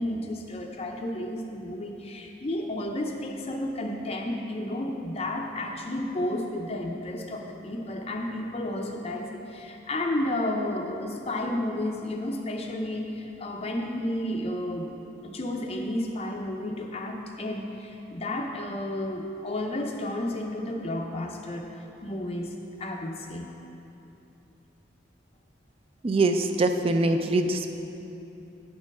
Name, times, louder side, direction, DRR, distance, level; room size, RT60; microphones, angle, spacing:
voice 1, 0.0-14.9 15.2-21.7 22.0-23.5, left 1 dB, 30° left, 2 dB, 0.5 m, -32 dB
voice 2, 26.0-27.7, right 2 dB, 30° right, 7 dB, 0.4 m, -23 dB
9.4 x 4.5 x 5.9 m, 2.9 s
head